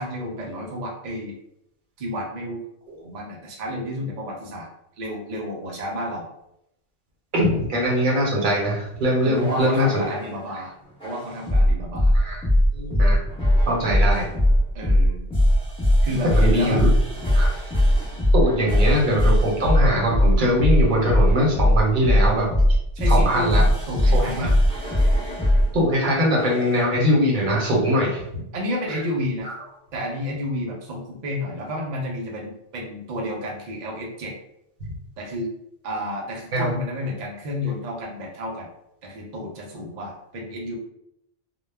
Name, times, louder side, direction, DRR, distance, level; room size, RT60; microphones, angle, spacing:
voice 1, 0.0-1.3 2.0-2.6 3.0-4.7 5.0-6.3 9.2-10.7 11.0-12.1 14.7-15.2 16.0-16.8 18.7-18.8 22.9-24.5 28.5-29.5 29.9-34.3 35.2-35.5 35.8-38.7 39.0-40.8, left 1 dB, 65° right, -1 dB, 0.4 m, -30 dB
voice 2, 7.3-10.0 12.1-12.4 12.7-13.2 13.7-14.3 16.2-16.9 17.3-17.5 18.3-22.5 23.1-23.6 24.1-24.5 25.7-28.2 29.4-29.5 36.5-36.7, equal, 50° right, -2 dB, 0.8 m, -22 dB
sound 1, 9.3-10.3 11.0-25.7 26.4-26.7, left 1 dB, 5° left, 0.8 m, -19 dB
2.2 x 2.1 x 3.3 m, 0.80 s
omnidirectional pair, 1.2 m